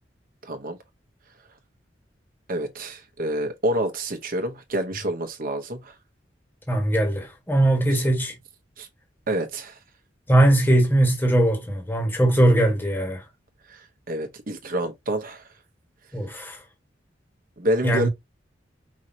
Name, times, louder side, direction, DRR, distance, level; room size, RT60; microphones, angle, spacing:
voice 1, 0.4-0.8 2.5-5.9 8.8-8.9 9.3-9.8 13.7-15.4 17.6-18.1, right 1 dB, 50° right, 1.1 m, -28 dB
voice 2, 6.7-8.3 10.3-13.2 16.1-16.6 17.8-18.1, right 1 dB, 10° left, 1.6 m, -20 dB
5.5 x 3.0 x 2.9 m
head